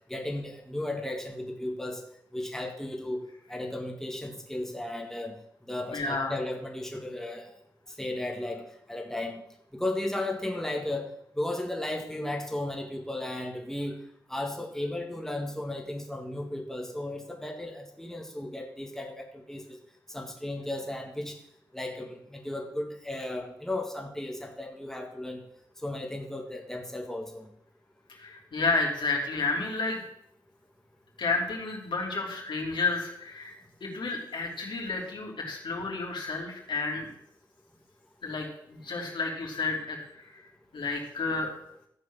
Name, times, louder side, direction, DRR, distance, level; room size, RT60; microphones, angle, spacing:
voice 1, 0.1-2.0 2.3-5.4 5.7-7.5 8.0-9.4 9.7-11.1 11.4-14.0 14.3-19.8 20.1-21.4 21.7-25.4 25.8-27.5, left 1 dB, 5° left, 2 dB, 1.9 m, -35 dB
voice 2, 5.9-6.3 28.1-30.0 31.2-33.5 33.8-37.1 38.2-40.4 40.7-41.5, left 3 dB, 65° left, -1 dB, 3.2 m, -31 dB
13.5 x 4.8 x 7.4 m, 0.75 s
cardioid pair, 50°, 9 cm